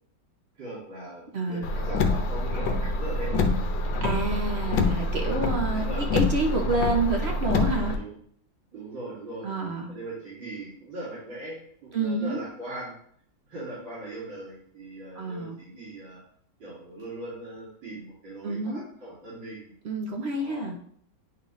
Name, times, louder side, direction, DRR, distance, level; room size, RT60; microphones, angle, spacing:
voice 1, 0.6-3.5 5.7-6.1 7.9-8.1 8.7-9.6 9.9-12.9 13.5-16.2 16.6-19.7 20.4-20.7, right 1 dB, 90° right, -8 dB, 3.0 m, -39 dB
voice 2, 1.3-1.7 4.0-8.0 9.4-9.9 11.9-12.4 15.1-15.6 18.4-18.8 19.8-20.8, right 2 dB, 55° right, 2 dB, 0.7 m, -28 dB
Car, 1.6-8.0, left 2 dB, 75° left, 1.4 m, -26 dB
9.5 x 3.9 x 3.1 m, 0.63 s
omnidirectional pair, 2.0 m